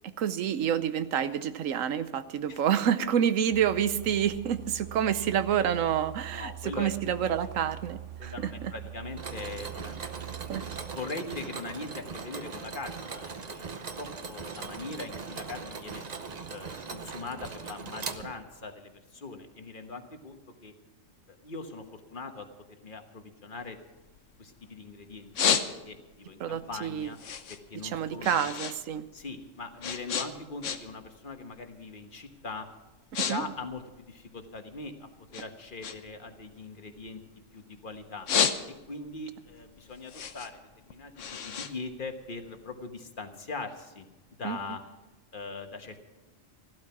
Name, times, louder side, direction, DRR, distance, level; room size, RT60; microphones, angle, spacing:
voice 1, 0.2-8.5 10.5-10.6 26.4-27.1 27.8-29.1 33.3-33.4 44.4-44.6, right 9 dB, 90° right, 12 dB, 1.1 m, -28 dB
sound 1, 3.5-11.0, right 11 dB, 70° right, 1.2 m, -43 dB
voice 2, 6.3-7.3 8.2-10.1 10.9-13.7 13.9-16.0 16.5-20.7 21.3-22.5 22.8-23.8 24.4-25.6 25.8-27.2 27.5-28.4 29.1-32.7 33.2-37.2 37.5-38.3 38.9-44.1 44.4-44.8 45.3-46.0, left 3 dB, 40° left, 6 dB, 1.4 m, -41 dB
Mechanisms, 9.2-18.7, right 5 dB, 40° right, 0.8 m, -40 dB
sound 2, 23.6-24.7 25.1-26.2 26.6-28.8 29.1-31.1 31.4-31.7 32.3-32.5 32.8-33.3 33.6-34.8 35.3-37.6 38.0-39.1 39.5-42.6, left 7 dB, 70° left, 1.2 m, -31 dB
15.0 x 12.5 x 5.9 m, 1.1 s
omnidirectional pair, 1.3 m